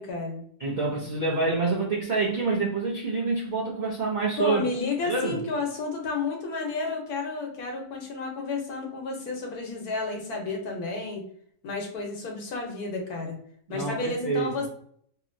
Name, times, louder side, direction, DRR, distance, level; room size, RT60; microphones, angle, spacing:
voice 1, 0.0-0.4 4.4-11.3 11.6-13.4 13.7-14.7, left 3 dB, 85° left, 1.3 m, -31 dB
voice 2, 0.6-4.6 5.1-5.4 13.7-14.5, right 3 dB, 55° right, 0.5 m, -27 dB
2.9 x 2.8 x 2.5 m
omnidirectional pair, 1.6 m